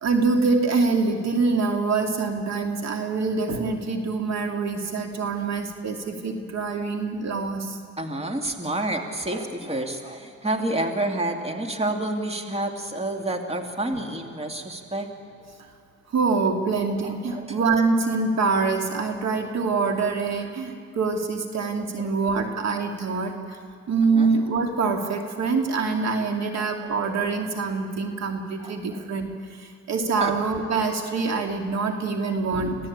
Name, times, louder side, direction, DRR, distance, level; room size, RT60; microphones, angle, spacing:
voice 1, 0.0-7.8 16.1-23.6 23.9-32.8, right 4 dB, 60° right, 4 dB, 2.7 m, -25 dB
voice 2, 8.0-15.1 17.0-17.6 22.0-22.1 22.4-22.5 24.0-24.3 26.6-26.9 28.6-29.0 30.2-30.3, right 1 dB, 20° right, 4 dB, 2.5 m, -29 dB
26.5 x 17.0 x 8.8 m, 2.4 s
cardioid pair, 90°, 30 cm